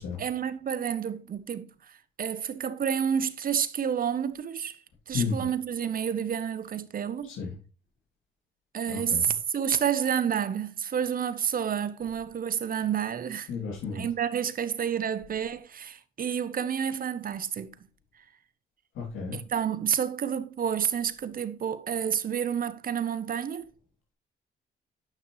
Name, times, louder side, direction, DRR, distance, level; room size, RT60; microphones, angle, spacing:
voice 1, 0.2-4.8 5.1-7.3 8.7-13.5 13.9-17.7 19.3-23.7, right 8 dB, 45° right, 0.9 m, -29 dB
voice 2, 5.1-5.5 7.2-7.5 8.9-9.3 13.5-14.0 18.9-19.4, left 5 dB, 85° left, 3.1 m, -32 dB
10.0 x 5.8 x 3.2 m
cardioid pair, 90°, 20 cm